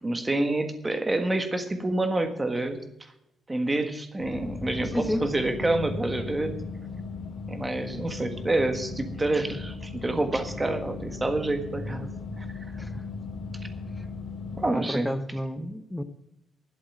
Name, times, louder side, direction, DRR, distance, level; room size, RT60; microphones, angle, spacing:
voice 1, 0.0-3.1 3.5-6.5 7.5-12.1 12.4-12.5 14.6-15.1, right 2 dB, 15° right, 1.5 m, -28 dB
sound 1, 4.2-14.7, left 4 dB, 65° left, 2.6 m, -37 dB
voice 2, 4.9-5.2 12.8-13.1 14.7-16.0, equal, 5° left, 0.8 m, -30 dB
11.5 x 8.0 x 9.1 m
cardioid pair, 155°, 0 cm